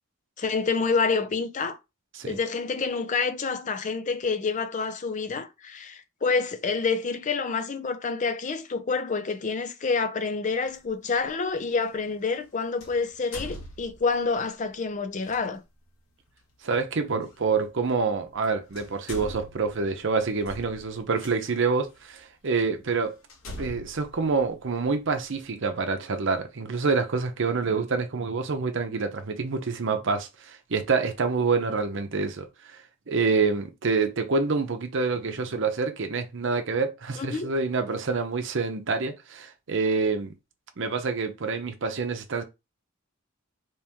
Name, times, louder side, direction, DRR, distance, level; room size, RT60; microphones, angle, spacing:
voice 1, 0.4-1.8 2.2-15.6 37.2-37.5, left 4 dB, 35° left, 0.5 m, -28 dB
sound 1, 10.7-10.9 12.8-14.3 15.2-15.4 17.3-17.4 18.3-18.4 18.7-21.3 22.0-22.1 22.6-22.7 23.3-25.1, left 1 dB, 85° left, 1.2 m, -41 dB
voice 2, 16.6-23.2 23.6-40.3 40.8-42.4, right 4 dB, 60° right, 0.7 m, -27 dB
3.0 x 2.9 x 3.5 m
head